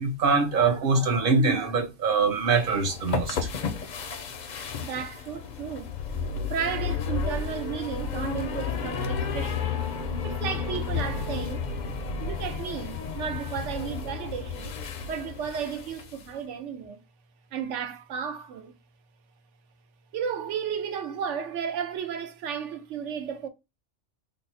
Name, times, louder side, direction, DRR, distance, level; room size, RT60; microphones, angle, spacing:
voice 1, 0.0-3.8 4.1-4.2, right 4 dB, 55° right, 0.9 m, -24 dB
sound 1, 2.4-16.3, left 6 dB, 55° left, 0.5 m, -32 dB
voice 2, 4.8-5.9 6.5-9.8 10.2-11.7 12.2-14.7 15.1-17.0 17.5-18.7 20.1-23.5, right 7 dB, 85° right, 1.0 m, -33 dB
3.4 x 2.0 x 4.0 m
omnidirectional pair, 1.2 m